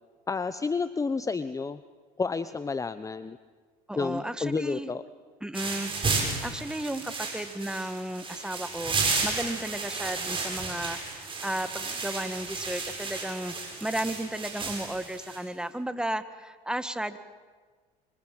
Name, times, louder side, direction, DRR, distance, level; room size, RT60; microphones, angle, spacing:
voice 1, 0.3-1.8 2.2-3.4 4.0-5.0, left 4 dB, 15° left, 13 dB, 0.9 m, -30 dB
voice 2, 3.9-4.9 5.4-17.2, right 1 dB, 5° right, 11 dB, 1.8 m, -34 dB
sound 1, 5.5-15.4, right 4 dB, 25° right, 7.7 m, -33 dB
26.0 x 25.0 x 7.8 m, 1.5 s
supercardioid pair, 95°, 19 cm